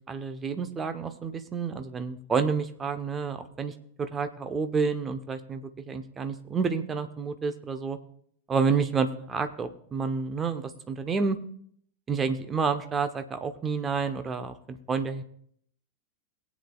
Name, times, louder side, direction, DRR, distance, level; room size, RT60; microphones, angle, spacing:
voice 1, 0.1-8.0 8.5-11.4 12.1-15.2, right 5 dB, 20° right, 9 dB, 1.0 m, -29 dB
21.0 x 8.5 x 2.4 m, 0.65 s
figure-of-eight pair, 90°, 0 cm